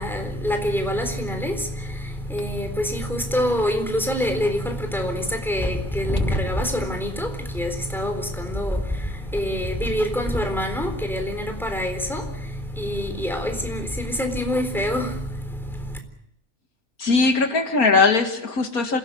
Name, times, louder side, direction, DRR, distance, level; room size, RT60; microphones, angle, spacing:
voice 1, 0.0-16.0, equal, ahead, 3.9 m, -26 dB
voice 2, 17.0-19.0, left 4 dB, 75° left, 2.3 m, -19 dB
27.0 x 17.5 x 7.8 m
omnidirectional pair, 1.6 m